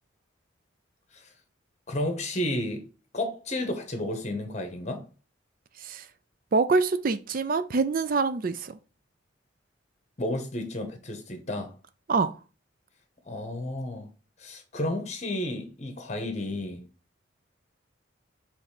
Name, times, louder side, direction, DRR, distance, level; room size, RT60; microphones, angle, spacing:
voice 1, 1.9-2.8 3.1-5.0 10.2-11.7 13.3-14.1 14.4-16.8, left 1 dB, 35° left, 1.2 m, -32 dB
voice 2, 6.5-8.8 12.1-12.3, right 4 dB, 45° right, 0.4 m, -25 dB
6.5 x 3.3 x 4.9 m
head